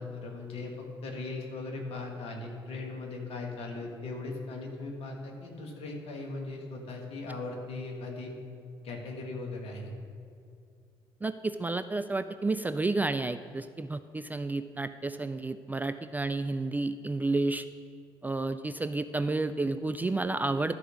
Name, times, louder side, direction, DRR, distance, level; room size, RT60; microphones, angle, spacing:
voice 1, 0.0-8.3 8.8-9.9, left 3 dB, 55° left, 1 dB, 1.7 m, -39 dB
voice 2, 11.2-17.7 18.2-20.8, right 3 dB, 15° right, 11 dB, 0.3 m, -31 dB
12.0 x 4.9 x 6.3 m, 2.4 s
figure-of-eight pair, 50°, 12 cm